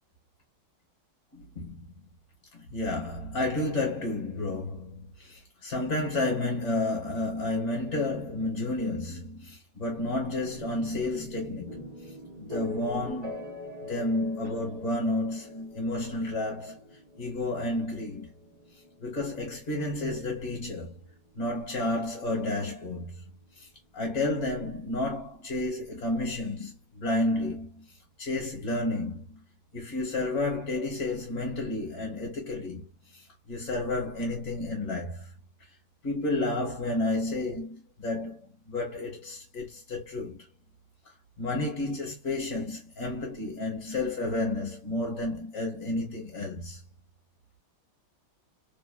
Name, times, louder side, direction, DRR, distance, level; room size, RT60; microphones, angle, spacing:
voice 1, 1.3-2.1 2.5-11.9 12.4-13.4 13.9-16.8 17.2-18.3 19.0-21.0 21.3-23.7 23.9-27.8 28.2-29.4 29.7-32.9 33.1-35.3 36.0-40.5 41.4-46.8, left 2 dB, 50° left, 1.2 m, -31 dB
sound 1, 10.2-24.0, left 1 dB, 85° right, 0.3 m, -44 dB
3.3 x 2.1 x 2.3 m
omnidirectional pair, 2.2 m